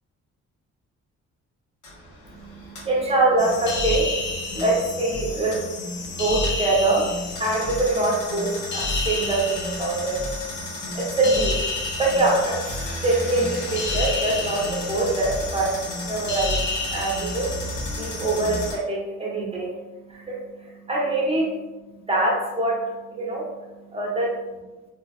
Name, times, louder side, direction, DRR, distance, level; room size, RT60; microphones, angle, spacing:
sound 1, 1.8-18.8, equal, 85° left, 0.9 m, -37 dB
voice 1, 2.3-24.6, right 2 dB, 20° right, -3 dB, 0.8 m, -25 dB
sound 2, 3.4-18.7, left 2 dB, 40° left, 0.4 m, -30 dB
2.5 x 2.3 x 2.3 m, 1.1 s
cardioid pair, 90°, 30 cm